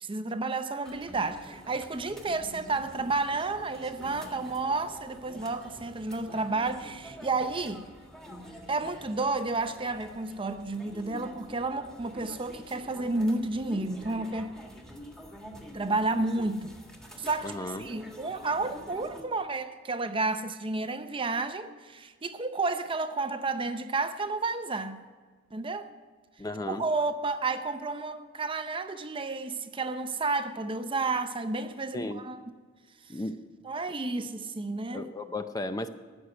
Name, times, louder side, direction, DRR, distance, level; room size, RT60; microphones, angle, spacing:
voice 1, 0.0-7.9 8.7-14.6 15.7-16.8 17.2-25.0 25.5-25.9 26.7-32.4 33.6-35.1, right 3 dB, 25° right, 0.7 m, -31 dB
sound 1, 0.8-19.2, equal, 5° left, 1.7 m, -47 dB
voice 2, 17.4-17.9 26.4-26.8 31.9-32.2 33.1-33.4 34.9-35.9, left 2 dB, 20° left, 0.6 m, -34 dB
15.5 x 6.5 x 9.5 m
head